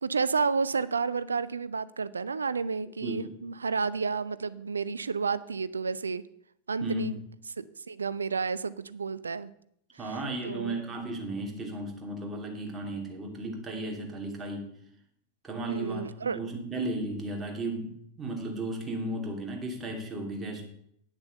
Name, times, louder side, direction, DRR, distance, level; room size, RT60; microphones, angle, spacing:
voice 1, 0.0-6.2 6.7-7.2 7.6-9.5 9.9-10.2 10.4-10.8 15.7-16.4, right 5 dB, 75° right, 17 dB, 0.5 m, -31 dB
voice 2, 3.0-3.3 6.8-7.1 10.0-14.7 15.4-16.0 16.3-20.6, right 2 dB, 15° right, 1 dB, 2.8 m, -35 dB
9.9 x 7.0 x 6.6 m, 0.71 s
figure-of-eight pair, 90°, 0 cm